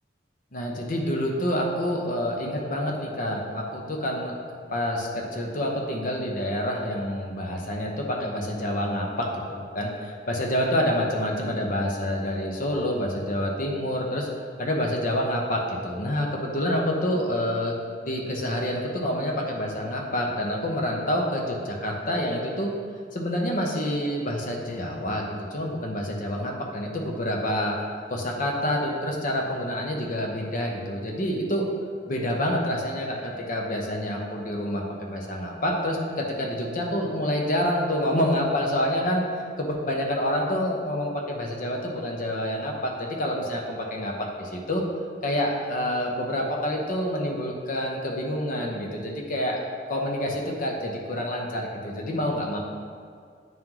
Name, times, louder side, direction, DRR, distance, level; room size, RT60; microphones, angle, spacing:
voice 1, 0.5-4.3 4.7-14.3 14.6-17.7 18.0-22.7 23.1-25.2 25.5-27.7 28.1-31.7 32.1-39.2 39.6-44.8 45.2-49.6 49.9-52.6, equal, 50° left, 0 dB, 0.8 m, -27 dB
9.2 x 3.7 x 3.0 m, 2.1 s
head